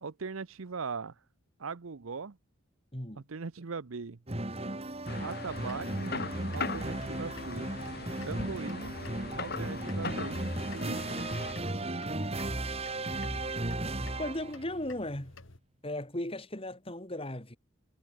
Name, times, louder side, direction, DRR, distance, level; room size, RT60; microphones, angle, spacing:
voice 1, 0.0-1.1 1.6-2.4 3.2-4.2 5.2-6.1 6.5-7.7 8.2-9.0 9.4-10.4 10.7-11.2, right 4 dB, 85° right, 0.8 m, -40 dB
voice 2, 2.9-3.2 14.2-15.3 15.8-17.6, left 1 dB, 25° left, 4.0 m, -36 dB
sound 1, 4.3-14.7, right 2 dB, 30° right, 2.0 m, -35 dB
sound 2, 5.1-11.5, left 3 dB, 50° left, 4.2 m, -40 dB
sound 3, 5.5-15.6, left 2 dB, 70° left, 2.7 m, -51 dB
head